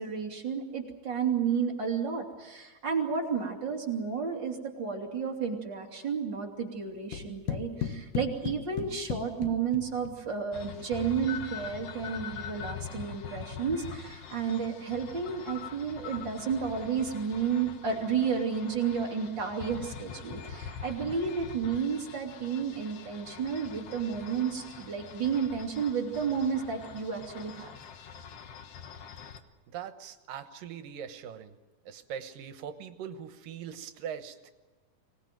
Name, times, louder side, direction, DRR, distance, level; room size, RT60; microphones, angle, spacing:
voice 1, 0.0-27.7, right 6 dB, 35° right, 0 dB, 3.2 m, -32 dB
sound 1, 7.1-10.3, left 8 dB, 70° left, 2.8 m, -36 dB
sound 2, 10.5-29.4, left 7 dB, 55° left, 2.0 m, -44 dB
voice 2, 29.7-31.6 31.9-34.5, right 8 dB, 80° right, 9 dB, 2.8 m, -41 dB
25.0 x 19.0 x 9.2 m, 1.2 s
omnidirectional pair, 3.9 m